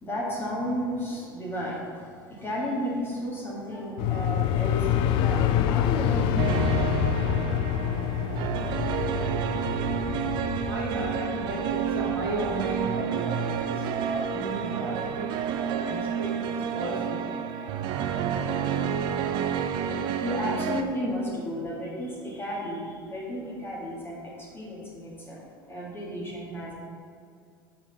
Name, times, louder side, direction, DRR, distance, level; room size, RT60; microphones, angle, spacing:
voice 1, 0.0-6.9 15.3-15.8 17.7-19.8 20.2-25.4 25.7-26.7, equal, 20° left, -5 dB, 1.7 m, -34 dB
sound 1, 4.0-12.8, left 9 dB, 45° left, 0.4 m, -27 dB
sound 2, 6.4-20.8, right 8 dB, 40° right, 0.4 m, -30 dB
voice 2, 10.6-17.4, right 2 dB, 80° right, -5 dB, 1.7 m, -34 dB
7.5 x 5.1 x 4.0 m, 2.2 s
figure-of-eight pair, 75°, 12 cm